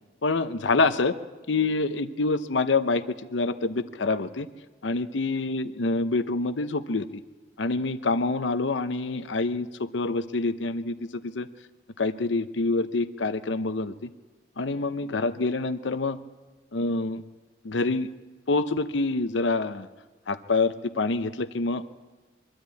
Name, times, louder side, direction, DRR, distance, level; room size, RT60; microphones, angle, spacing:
voice 1, 0.2-1.2 1.5-3.0 3.3-4.5 4.8-7.2 7.6-10.9 11.3-11.5 12.0-14.1 14.6-16.2 16.7-17.2 17.6-18.1 18.5-19.9 20.3-21.8, left 3 dB, 85° left, 12 dB, 0.8 m, -26 dB
23.5 x 13.5 x 8.4 m, 1.3 s
head